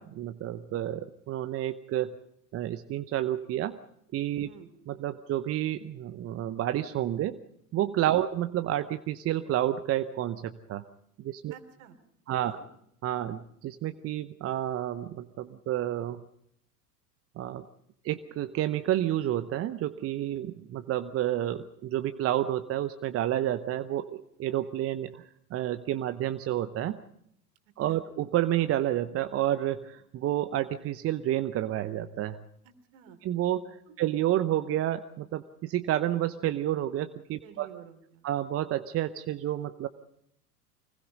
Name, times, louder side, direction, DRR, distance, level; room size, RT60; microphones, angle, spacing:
voice 1, 0.0-2.2 2.5-3.8 4.1-4.5 4.9-7.4 7.7-10.8 11.2-11.5 12.3-12.6 13.0-16.2 17.4-17.7 18.0-25.2 25.5-27.0 27.8-32.4 33.2-37.7 38.2-39.9, right 12 dB, 30° right, 10 dB, 0.9 m, -30 dB
voice 2, 11.5-12.0 12.3-12.7 27.9-28.0 32.6-33.2 33.9-34.0 37.4-38.2, right 9 dB, 55° right, 9 dB, 3.3 m, -51 dB
25.0 x 20.0 x 5.3 m, 0.74 s
hypercardioid pair, 90°, 47 cm